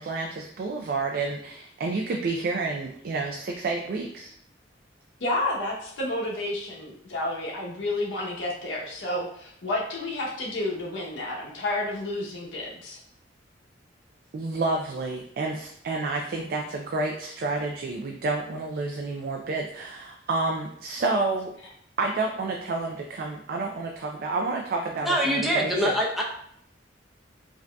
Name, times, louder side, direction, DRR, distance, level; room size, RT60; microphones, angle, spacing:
voice 1, 0.0-4.3 14.3-21.5 22.0-26.0, right 3 dB, 55° right, 2 dB, 0.4 m, -29 dB
voice 2, 5.2-13.0, left 1 dB, 75° left, -3 dB, 0.8 m, -30 dB
voice 3, 25.0-26.2, equal, ahead, -3 dB, 0.6 m, -24 dB
4.8 x 2.6 x 2.2 m, 0.68 s
head